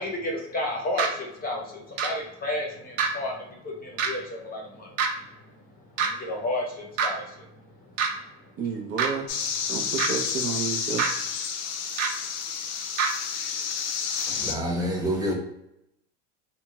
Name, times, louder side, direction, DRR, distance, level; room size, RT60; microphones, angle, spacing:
voice 1, 0.0-5.0 5.4-5.6 6.0-7.6 8.1-9.0, left 1 dB, 25° left, 0 dB, 0.8 m, -33 dB
sound 1, 1.0-1.1 2.0-2.1 3.0-3.1 4.0-4.1 5.0-5.1 6.0-6.1 7.0-7.1 8.0-8.1 9.0-9.1 10.0-10.1 11.0-11.1 12.0-12.1 13.0-13.1, right 6 dB, 80° right, 0.8 m, -24 dB
voice 2, 8.6-9.3 9.7-11.0, right 6 dB, 40° right, 0 dB, 0.7 m, -30 dB
sound 2, 9.3-14.5, left 6 dB, 45° left, 0.5 m, -30 dB
voice 3, 14.3-15.3, equal, 10° right, -2 dB, 1.0 m, -27 dB
2.7 x 2.3 x 2.9 m, 0.80 s
supercardioid pair, 110°, 36 cm